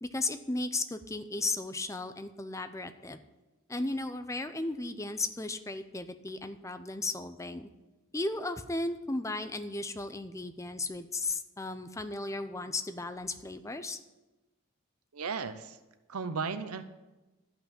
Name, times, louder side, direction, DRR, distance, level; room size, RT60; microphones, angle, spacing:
voice 1, 0.0-3.2 3.7-7.7 8.1-14.0, left 2 dB, 15° left, 9 dB, 0.6 m, -35 dB
voice 2, 15.1-15.8 16.1-16.8, right 5 dB, 80° right, 11 dB, 0.7 m, -35 dB
12.5 x 5.9 x 8.8 m, 1.1 s
head